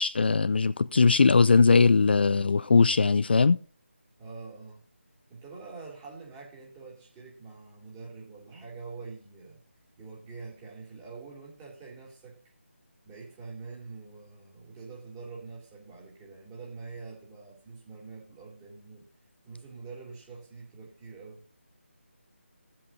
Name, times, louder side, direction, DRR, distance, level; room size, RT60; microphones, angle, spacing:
voice 1, 0.0-3.6, left 4 dB, 50° left, 0.4 m, -20 dB
voice 2, 4.2-4.8 5.3-9.6 10.0-12.4 13.0-19.1 19.4-21.4, right 4 dB, 15° right, 2.7 m, -45 dB
17.0 x 7.7 x 2.7 m
figure-of-eight pair, 160°, 7 cm